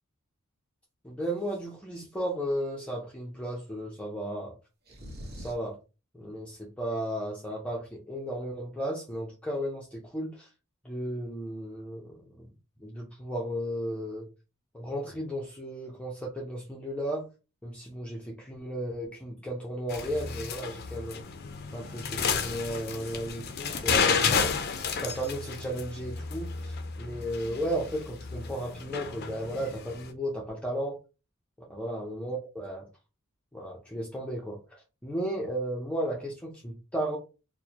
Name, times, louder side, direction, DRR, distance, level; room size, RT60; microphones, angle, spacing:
voice 1, 1.0-4.6 5.4-5.8 6.1-10.5 10.8-12.5 12.8-14.3 14.7-17.3 17.6-21.2 21.7-24.6 25.0-31.0 31.7-32.9 33.5-34.6 35.0-37.2, equal, 5° left, -3 dB, 0.6 m, -34 dB
sound 1, 4.8-5.7, equal, 50° right, 1.0 m, -42 dB
sound 2, 19.9-30.1, left 6 dB, 50° left, 0.5 m, -32 dB
4.5 x 2.2 x 2.8 m, 0.30 s
head